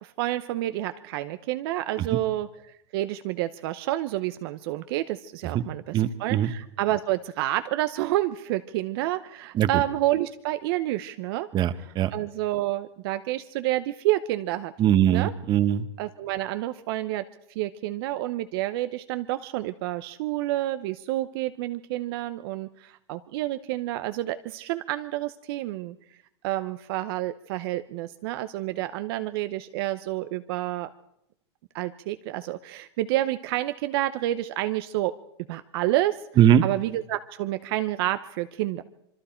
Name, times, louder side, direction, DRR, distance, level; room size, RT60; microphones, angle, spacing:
voice 1, 0.0-2.5 2.9-11.5 12.1-14.7 15.1-15.3 16.0-17.2 17.5-26.0 26.4-30.9 31.7-35.1 35.5-36.2 36.6-38.8, right 15 dB, 55° right, 11 dB, 0.8 m, -29 dB
voice 2, 5.9-6.5 9.5-9.8 11.5-12.1 14.8-15.9 36.4-36.6, right 10 dB, 30° right, 12 dB, 1.2 m, -21 dB
26.0 x 23.0 x 4.5 m, 0.77 s
supercardioid pair, 135°, 15 cm